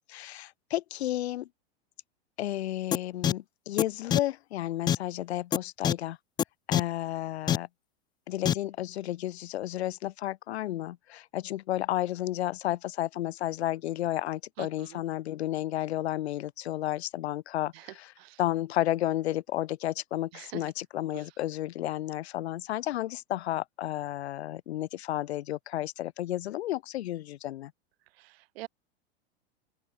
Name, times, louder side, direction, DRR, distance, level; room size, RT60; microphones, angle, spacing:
voice 1, 0.1-1.5 2.4-6.2 6.7-7.7 8.3-18.1 18.4-27.7, left 14 dB, 75° left, 2.3 m, -32 dB
sound 1, 2.9-3.0 3.2-3.3 3.8-3.9 4.1-4.2 4.9-5.0 5.5-5.6 5.8-5.9 6.4-6.5 6.7-6.8 7.5-7.6 8.4-8.5, left 9 dB, 15° left, 0.3 m, -23 dB
voice 2, 14.6-15.0 17.7-18.4 20.3-20.7 21.1-21.2 28.2-28.7, right 19 dB, 65° right, 4.3 m, -45 dB
hypercardioid pair, 110°, 33 cm